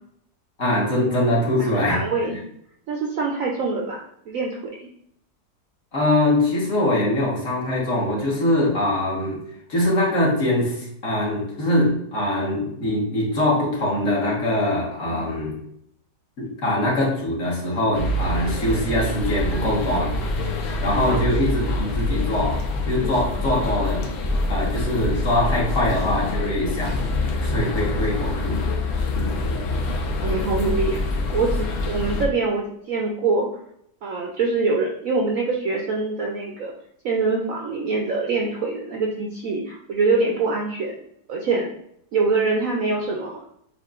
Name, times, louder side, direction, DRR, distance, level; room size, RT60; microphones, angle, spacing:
voice 1, 0.6-2.0 5.9-9.4 9.7-15.6 16.4-20.1 20.8-22.6 22.9-24.1 24.5-27.1 27.4-28.6 29.1-29.3, left 1 dB, 50° left, -4 dB, 1.5 m, -23 dB
voice 2, 1.9-2.3 2.9-4.9 15.0-15.2 21.0-21.2 30.2-31.0 31.3-33.5 34.0-36.7 37.0-41.0 41.3-41.7 42.1-43.4, right 3 dB, 70° right, -1 dB, 0.8 m, -24 dB
sound 1, 17.9-32.3, left 2 dB, 65° left, 1.0 m, -25 dB
7.2 x 2.5 x 2.4 m, 0.70 s
omnidirectional pair, 1.9 m